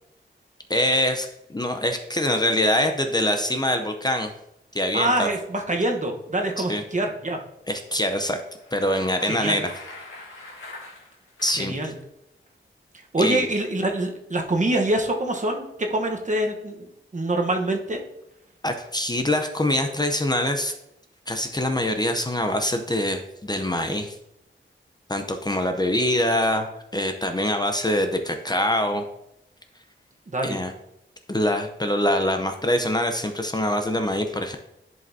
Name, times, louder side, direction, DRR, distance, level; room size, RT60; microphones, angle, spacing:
voice 1, 0.7-4.3 4.7-5.3 6.6-6.8 7.7-8.4 8.7-9.7 11.4-11.9 13.2-13.4 18.6-20.7 21.3-24.1 25.1-29.0 30.4-30.7 31.3-34.6, left 1 dB, 20° left, 5 dB, 0.6 m, -24 dB
voice 2, 4.9-7.4 9.3-9.6 11.6-12.0 13.1-16.9 17.1-18.0 30.3-30.6, right 1 dB, 40° right, 2 dB, 1.0 m, -25 dB
Bicycle, 8.5-11.8, left 2 dB, 85° left, 2.0 m, -43 dB
10.5 x 5.2 x 2.7 m, 0.82 s
wide cardioid pair, 80°, 20 cm